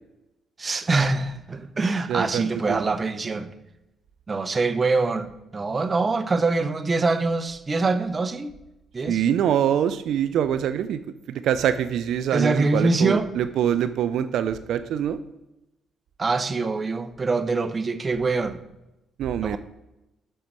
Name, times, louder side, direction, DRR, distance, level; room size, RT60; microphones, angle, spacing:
voice 1, 0.6-3.5 4.3-8.5 8.9-9.2 12.3-13.3 16.2-18.6 19.4-19.6, right 3 dB, 30° right, 0.7 m, -24 dB
voice 2, 2.1-2.8 9.1-11.0 11.3-15.2 19.2-19.6, right 9 dB, 75° right, 0.4 m, -24 dB
6.2 x 5.4 x 5.9 m
cardioid pair, 90°, 0 cm